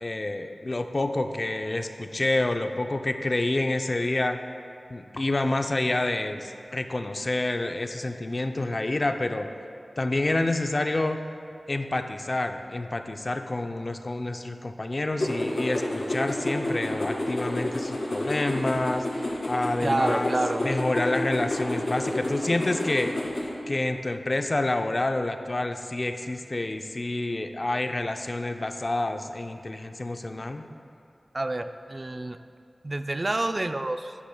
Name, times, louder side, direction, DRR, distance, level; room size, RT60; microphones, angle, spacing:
voice 1, 0.0-4.4 4.9-9.5 10.0-11.2 11.7-20.3 20.6-23.1 23.7-30.7, left 2 dB, 50° left, 6 dB, 0.5 m, -28 dB
sound 1, 15.2-23.5, left 1 dB, 75° left, 2.0 m, -30 dB
voice 2, 19.8-20.7 31.3-32.4 32.8-34.2, right 2 dB, 45° right, 9 dB, 0.4 m, -28 dB
11.5 x 10.0 x 2.3 m, 2.5 s
cardioid pair, 45°, 0 cm